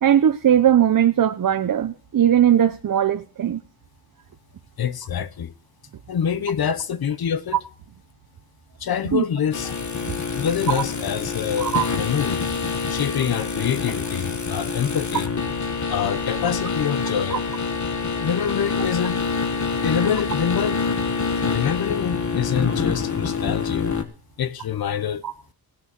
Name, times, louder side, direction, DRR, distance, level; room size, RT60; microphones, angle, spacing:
voice 1, 0.0-3.6 9.1-9.2 10.7-10.8 11.6-11.9 17.3-17.4 25.2-25.3, right 10 dB, 55° right, 0.8 m, -19 dB
voice 2, 4.8-5.5 6.1-7.6 8.8-9.7 10.3-12.4 12.9-15.3 15.9-17.4 18.2-19.2 19.8-20.8 21.5-23.9 24.4-25.2, left 8 dB, 65° left, 1.0 m, -26 dB
sound 1, 9.5-24.0, left 5 dB, 45° left, 1.8 m, -26 dB
16.5 x 6.4 x 7.5 m
cardioid pair, 85°, 39 cm